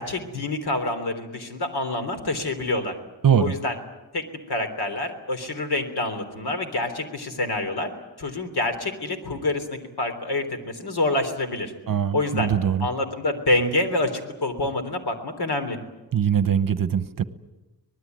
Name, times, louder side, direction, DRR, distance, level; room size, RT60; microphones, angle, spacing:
voice 1, 0.0-3.0 3.4-3.8 4.1-7.9 8.2-11.7 12.1-12.5 12.8-15.8, left 2 dB, 70° left, 8 dB, 3.6 m, -27 dB
voice 2, 3.2-3.5 11.9-12.9 16.1-17.2, right 8 dB, 55° right, 13 dB, 1.0 m, -22 dB
25.0 x 20.0 x 9.4 m, 1.1 s
wide cardioid pair, 175°, 40 cm